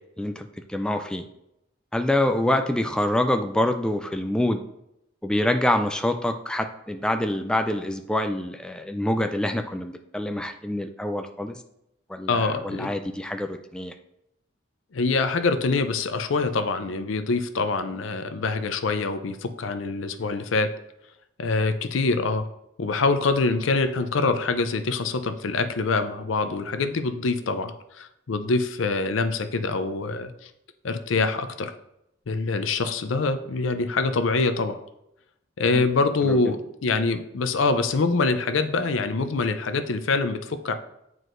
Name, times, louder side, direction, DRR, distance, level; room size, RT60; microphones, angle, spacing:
voice 1, 0.2-1.2 1.9-4.6 5.2-11.6 12.1-13.9 35.7-35.8 36.2-36.4, left 1 dB, 5° left, 6 dB, 0.3 m, -26 dB
voice 2, 12.3-12.9 14.9-20.7 21.4-22.5 22.8-30.5 30.8-31.7 32.3-34.8 35.6-40.7, left 3 dB, 85° left, 9 dB, 0.5 m, -25 dB
7.8 x 4.7 x 2.6 m, 0.82 s
head